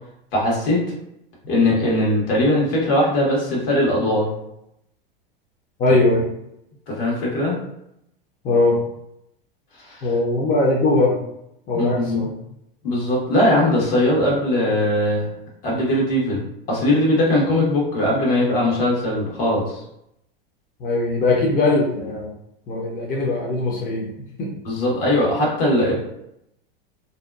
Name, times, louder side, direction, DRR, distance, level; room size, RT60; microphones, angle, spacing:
voice 1, 0.3-0.8 1.5-4.3 6.9-7.5 9.8-10.0 11.7-12.3 12.8-15.2 15.6-19.8 24.6-25.9, left 1 dB, 70° left, -3 dB, 1.3 m, -20 dB
voice 2, 5.8-6.3 8.4-8.8 10.0-11.2 11.7-12.3 20.8-22.3 22.7-24.5, left 2 dB, 30° left, -2 dB, 0.6 m, -20 dB
2.7 x 2.2 x 2.3 m, 0.81 s
hypercardioid pair, 100°, 29 cm